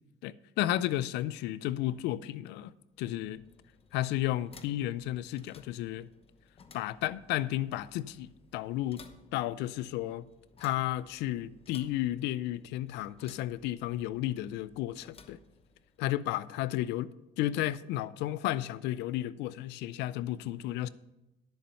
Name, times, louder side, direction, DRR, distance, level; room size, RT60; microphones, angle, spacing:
voice 1, 0.2-2.7 3.0-3.4 3.9-6.1 6.7-9.0 9.3-10.3 10.6-15.4 16.0-20.9, left 14 dB, 90° left, 0.4 m, -33 dB
sound 1, 2.9-16.2, left 5 dB, 35° left, 0.8 m, -59 dB
10.5 x 7.1 x 5.7 m
cardioid pair, 110°, 17 cm